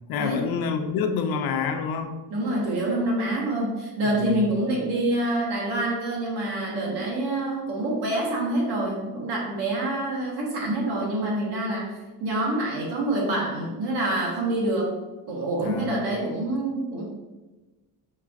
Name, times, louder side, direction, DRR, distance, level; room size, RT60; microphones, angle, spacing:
voice 1, 0.1-2.2 4.2-4.5 15.6-16.0, left 6 dB, 65° left, 7 dB, 0.5 m, -27 dB
voice 2, 2.3-15.0 15.3-17.0, right 1 dB, 90° right, -2 dB, 1.4 m, -26 dB
4.5 x 3.8 x 2.4 m, 1.1 s
cardioid pair, 155°, 40 cm